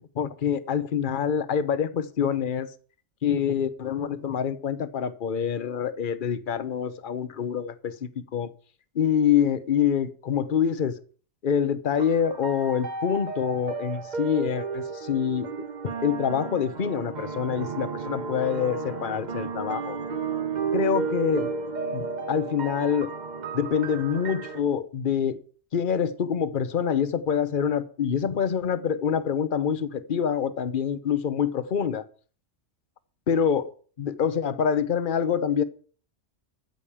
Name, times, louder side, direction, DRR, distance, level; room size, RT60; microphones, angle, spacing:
voice 1, 0.1-2.7 3.2-7.9 8.3-8.5 8.9-11.0 11.4-15.5 16.0-20.0 20.7-21.5 21.9-23.1 23.5-25.4 25.7-32.1 33.3-33.7 34.0-35.6, left 8 dB, 50° left, 1.0 m, -26 dB
sound 1, 12.0-24.6, right 5 dB, 40° right, 1.0 m, -33 dB
14.0 x 5.2 x 8.6 m
omnidirectional pair, 1.2 m